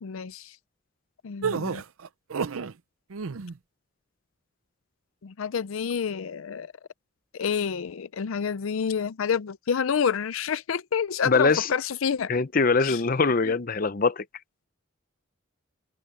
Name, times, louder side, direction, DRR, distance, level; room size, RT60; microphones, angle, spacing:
voice 1, 0.0-0.6 1.2-1.8 5.2-6.7 7.3-12.3 12.8-13.0 13.4-13.5, left 7 dB, 80° left, 0.5 m, -28 dB
sound 1, 1.4-2.7 3.1-3.6, right 5 dB, 85° right, 0.6 m, -30 dB
voice 2, 11.2-11.7 12.3-14.2, left 4 dB, 40° left, 0.7 m, -22 dB
open air
head